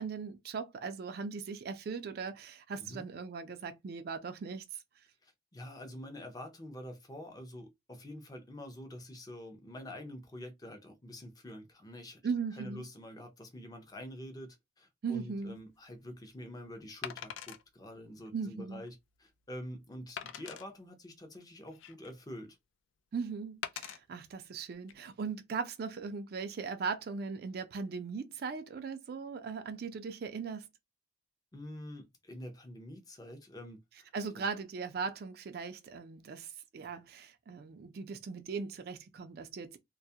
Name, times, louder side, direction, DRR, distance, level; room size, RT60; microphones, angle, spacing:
voice 1, 0.0-4.6 12.2-12.8 15.0-15.6 18.3-18.8 23.1-30.7 34.1-39.8, right 5 dB, 55° right, 0.3 m, -39 dB
voice 2, 5.2-12.2 12.5-22.6 31.5-34.4, left 1 dB, 20° left, 0.5 m, -47 dB
Wood, 15.4-15.6 17.0-17.6 18.2-18.3 18.9-19.0 20.2-20.6 21.4-22.2 23.6-24.0 24.7-24.9, left 9 dB, 85° left, 0.3 m, -42 dB
2.2 x 2.0 x 2.7 m
head